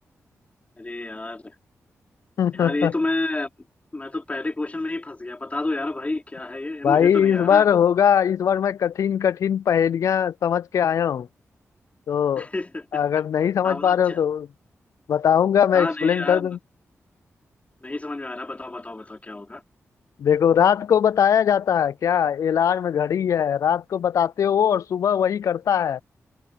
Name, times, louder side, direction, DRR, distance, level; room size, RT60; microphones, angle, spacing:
voice 1, 0.8-1.5 2.5-3.5 3.9-7.7 12.4-13.0 13.6-14.2 15.7-16.5 17.8-19.6, left 2 dB, 25° left, 4.0 m, -29 dB
voice 2, 2.4-2.9 6.8-11.3 12.1-12.5 12.9-14.5 15.1-16.6 20.2-26.0, left 8 dB, 75° left, 0.4 m, -20 dB
cardioid pair, 65°, 5 cm